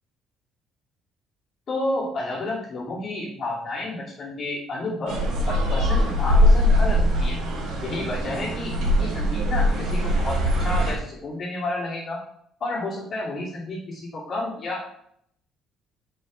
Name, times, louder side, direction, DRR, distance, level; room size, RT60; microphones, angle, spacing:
voice 1, 1.7-5.2 5.5-7.4 7.8-12.2 12.6-14.9, left 2 dB, 40° left, -9 dB, 2.9 m, -31 dB
sound 1, 5.1-10.9, equal, 80° right, 2.7 m, -21 dB
9.4 x 6.2 x 3.4 m, 0.70 s
cardioid pair, 125°, 0 cm